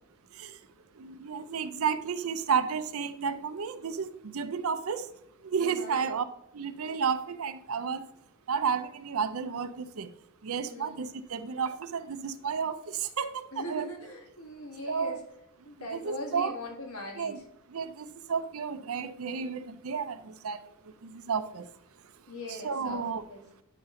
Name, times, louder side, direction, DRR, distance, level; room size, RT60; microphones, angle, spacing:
voice 1, 1.0-5.1 5.4-6.3 6.5-8.0 8.5-10.1 10.4-13.9 14.9-15.2 15.9-16.5 17.2-17.4 17.7-21.7 22.5-23.2, right 6 dB, 80° right, 0.6 m, -32 dB
voice 2, 5.6-6.1 10.6-11.1 13.5-15.2 15.6-17.4 22.3-23.0 23.3-23.4, equal, 85° left, 2.0 m, -40 dB
9.1 x 5.7 x 3.8 m
head